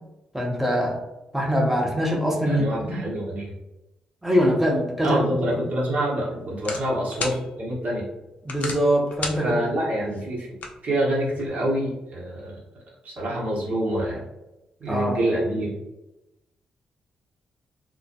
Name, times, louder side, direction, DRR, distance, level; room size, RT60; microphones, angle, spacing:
voice 1, 0.3-1.0 1.3-3.0 4.2-5.7 8.5-9.6 14.9-15.2, equal, 10° right, -1 dB, 0.8 m, -23 dB
voice 2, 2.5-3.5 5.0-8.0 9.4-10.5 10.8-12.6 13.0-14.2 14.8-15.7, right 1 dB, 55° right, -5 dB, 0.9 m, -26 dB
sound 1, 5.4-11.5, left 3 dB, 55° left, 0.4 m, -38 dB
2.2 x 2.1 x 2.8 m, 0.95 s
hypercardioid pair, 40°, 3 cm